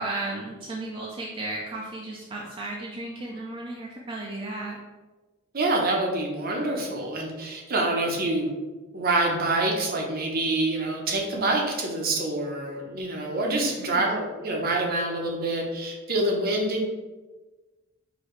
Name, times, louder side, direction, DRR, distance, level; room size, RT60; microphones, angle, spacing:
voice 1, 0.0-4.8 13.5-14.2, right 2 dB, 25° right, -3 dB, 0.4 m, -34 dB
voice 2, 5.5-8.5 8.9-16.8, right 2 dB, 45° right, 1 dB, 0.7 m, -26 dB
4.8 x 2.7 x 3.1 m, 1.2 s
head